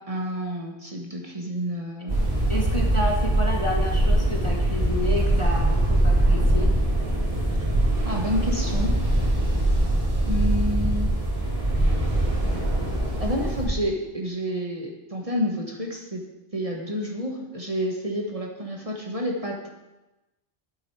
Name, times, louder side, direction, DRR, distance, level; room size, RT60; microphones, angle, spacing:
voice 1, 0.1-2.3 8.0-9.0 10.3-11.1 13.2-16.2 16.5-19.7, equal, 30° right, 0 dB, 1.3 m, -29 dB
sound 1, 2.1-13.7, right 1 dB, 55° right, 2.8 m, -22 dB
voice 2, 2.5-6.7, left 1 dB, 30° left, -1 dB, 1.1 m, -30 dB
8.9 x 7.6 x 4.6 m, 1.0 s
omnidirectional pair, 1.1 m